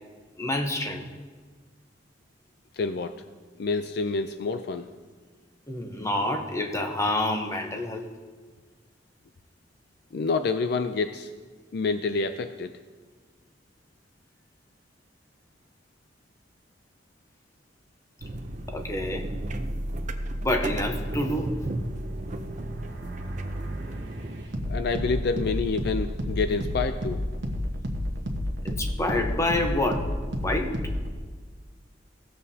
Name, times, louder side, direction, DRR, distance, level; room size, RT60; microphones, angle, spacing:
voice 1, 0.4-1.1 5.7-8.1 18.7-19.3 20.4-21.5 28.6-30.0 30.4-30.7, left 1 dB, 15° left, 3 dB, 0.9 m, -27 dB
voice 2, 2.7-3.2 3.6-4.9 10.1-11.3 11.7-12.7 24.7-27.2, left 4 dB, 60° left, 9 dB, 0.4 m, -28 dB
sound 1, 18.2-24.5, right 1 dB, 40° right, 0.6 m, -33 dB
sound 2, 22.5-31.2, left 1 dB, 80° right, 1.2 m, -31 dB
17.0 x 7.3 x 2.8 m, 1.5 s
head